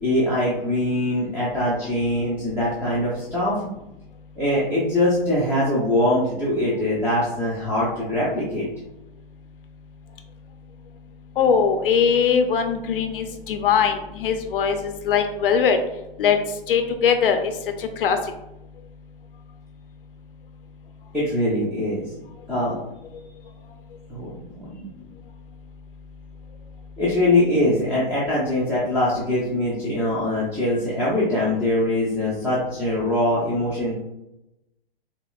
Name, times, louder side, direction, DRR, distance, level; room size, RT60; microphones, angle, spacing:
voice 1, 0.0-3.6 4.4-8.7 21.1-22.1 22.5-22.8 24.1-24.9 27.0-33.9, left 1 dB, 5° right, -9 dB, 0.6 m, -22 dB
voice 2, 11.4-15.8 16.2-16.4 16.7-17.4 17.8-18.2, left 7 dB, 65° left, 7 dB, 0.5 m, -21 dB
5.2 x 2.1 x 2.3 m, 0.90 s
hypercardioid pair, 130°, 30 cm